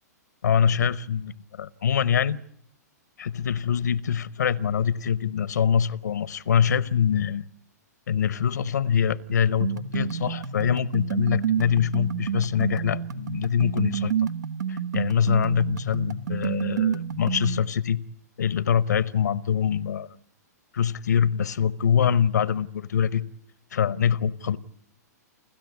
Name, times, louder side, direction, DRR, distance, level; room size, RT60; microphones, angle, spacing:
voice 1, 0.4-2.4 3.2-7.4 8.1-14.1 14.7-18.0 18.4-20.1 20.7-23.3 23.7-24.6, left 8 dB, 75° left, 0.8 m, -24 dB
sound 1, 9.6-17.6, right 8 dB, 80° right, 1.3 m, -29 dB
29.0 x 13.5 x 9.4 m
hypercardioid pair, 120°, 9 cm